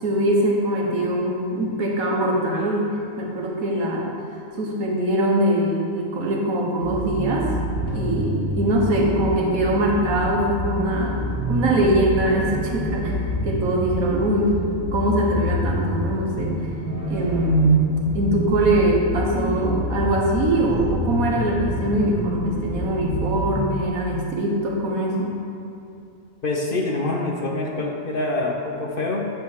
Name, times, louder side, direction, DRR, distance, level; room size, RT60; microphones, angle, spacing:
voice 1, 0.0-4.1 4.6-7.5 7.9-11.2 11.5-13.2 13.4-14.6 14.9-16.6 17.1-25.4, right 1 dB, 85° right, -2 dB, 1.6 m, -22 dB
sound 1, 6.8-23.7, equal, 15° right, 1.3 m, -27 dB
voice 2, 26.4-29.2, left 2 dB, 50° left, 0 dB, 0.8 m, -25 dB
9.4 x 3.4 x 6.3 m, 2.6 s
omnidirectional pair, 1.4 m